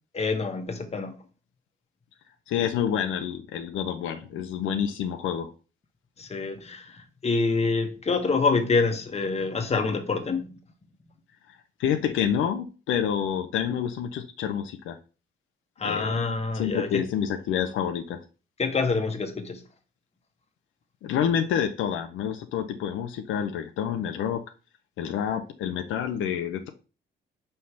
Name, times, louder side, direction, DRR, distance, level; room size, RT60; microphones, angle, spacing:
voice 1, 0.1-1.1 6.2-10.5 15.8-17.0 18.6-19.6, left 4 dB, 30° left, 1.3 m, -26 dB
voice 2, 2.5-5.5 11.5-15.0 15.8-16.1 16.5-18.2 21.0-24.4 25.0-26.7, left 8 dB, 85° left, 0.7 m, -28 dB
5.6 x 3.2 x 5.7 m
cardioid pair, 90°, 20 cm